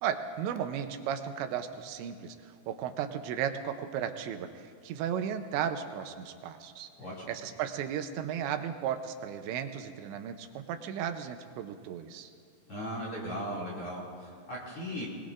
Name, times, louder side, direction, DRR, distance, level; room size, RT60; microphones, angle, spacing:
voice 1, 0.0-6.9 7.3-12.3, right 9 dB, 80° right, 7 dB, 2.9 m, -35 dB
voice 2, 7.0-7.3 12.7-15.1, equal, 35° left, -6 dB, 2.9 m, -37 dB
24.0 x 20.5 x 2.5 m, 2.3 s
omnidirectional pair, 5.3 m